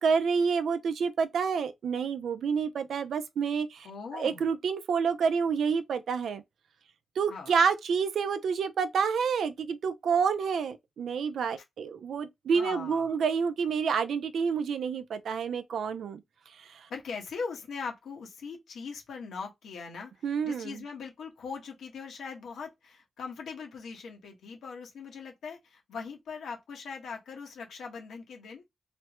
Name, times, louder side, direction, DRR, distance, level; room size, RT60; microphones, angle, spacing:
voice 1, 0.0-3.9 4.1-6.4 7.2-16.2 16.6-16.9 20.2-20.8, right 6 dB, 80° right, 0.4 m, -28 dB
voice 2, 3.8-4.5 7.3-7.6 12.5-13.2 16.9-20.1 20.4-28.6, left 5 dB, 85° left, 1.1 m, -40 dB
3.2 x 2.1 x 2.9 m
cardioid pair, 85°, 0 cm